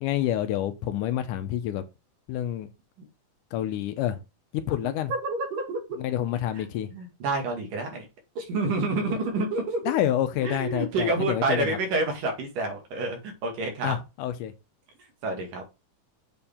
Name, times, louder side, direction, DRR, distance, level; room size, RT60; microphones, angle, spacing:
voice 1, 0.0-1.8 2.3-2.7 3.5-4.2 4.5-5.1 6.0-6.9 9.9-11.8 13.8-14.5, left 11 dB, 80° left, 2.2 m, -28 dB
voice 2, 5.1-5.8 6.9-8.1 8.4-9.8 10.4-14.0 15.2-15.6, right 2 dB, 80° right, 3.6 m, -28 dB
7.8 x 4.3 x 3.6 m
omnidirectional pair, 3.7 m